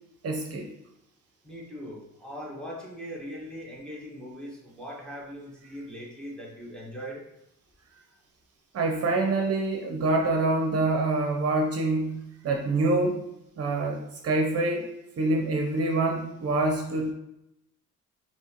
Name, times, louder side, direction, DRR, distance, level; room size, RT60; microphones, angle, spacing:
voice 1, 0.2-0.7 8.7-13.2 13.6-14.9 15.2-17.1, right 2 dB, 55° right, 2 dB, 0.7 m, -26 dB
voice 2, 1.4-7.2, equal, 5° left, -4 dB, 1.4 m, -40 dB
5.4 x 2.9 x 2.9 m, 0.86 s
cardioid pair, 90°, 30 cm